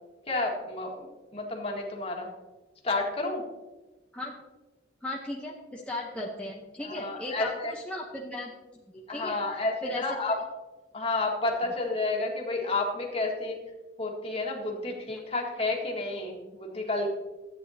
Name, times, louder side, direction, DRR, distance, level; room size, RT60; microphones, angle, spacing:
voice 1, 0.3-2.3 2.8-3.4 6.8-7.7 9.1-10.4 10.9-13.6 14.0-17.1, left 2 dB, 35° left, 0 dB, 1.8 m, -30 dB
voice 2, 5.0-10.3 11.6-11.7, left 1 dB, 5° left, -3 dB, 1.0 m, -37 dB
13.5 x 9.2 x 2.8 m, 1.2 s
head